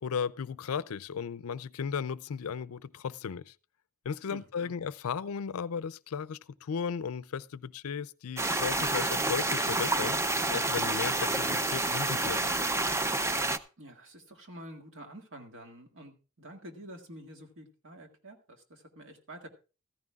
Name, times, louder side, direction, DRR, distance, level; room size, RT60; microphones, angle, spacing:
voice 1, 0.0-3.5 4.0-10.2 10.5-12.5, left 6 dB, 75° left, 0.4 m, -35 dB
voice 2, 4.3-4.8 13.8-19.5, right 1 dB, 60° right, 1.9 m, -48 dB
sound 1, 8.4-13.6, right 2 dB, 15° right, 0.5 m, -29 dB
14.5 x 14.0 x 2.4 m
head